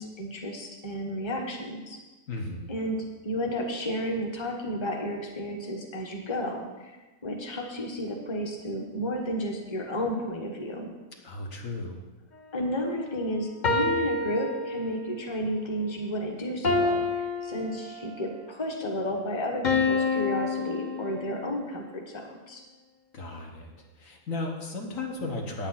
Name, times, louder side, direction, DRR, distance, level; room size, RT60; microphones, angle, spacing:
voice 1, 0.0-2.0 2.7-6.9 7.2-11.0 12.5-22.6, equal, 20° left, 1 dB, 1.3 m, -32 dB
voice 2, 2.3-2.7 11.2-12.0 23.1-23.7 24.0-25.7, left 2 dB, 70° left, 1 dB, 1.7 m, -35 dB
sound 1, 13.6-15.2 16.6-18.3 19.6-21.5, left 3 dB, 40° left, 0.8 m, -28 dB
8.9 x 8.8 x 5.8 m, 1.2 s
omnidirectional pair, 1.5 m